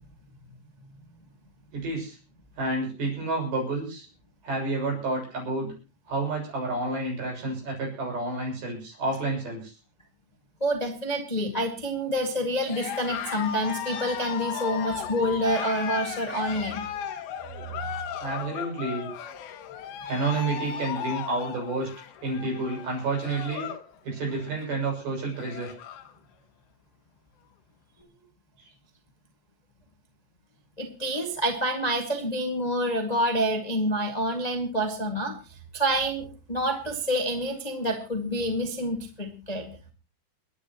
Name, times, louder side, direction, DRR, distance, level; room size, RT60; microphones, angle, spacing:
voice 1, 1.7-2.2 2.6-4.1 4.4-5.7 6.1-9.7 18.2-19.1 20.1-21.9 22.2-23.7 24.0-25.7 28.6-28.7, right 2 dB, 75° right, -1 dB, 8.6 m, -30 dB
voice 2, 10.6-16.8 30.8-35.4 35.7-39.6, equal, 25° left, 2 dB, 0.9 m, -27 dB
Cheering, 12.6-23.9 24.2-24.6 25.0-25.1 25.3-26.1, left 9 dB, 80° left, 3.2 m, -36 dB
29.5 x 10.5 x 3.0 m, 0.32 s
omnidirectional pair, 4.4 m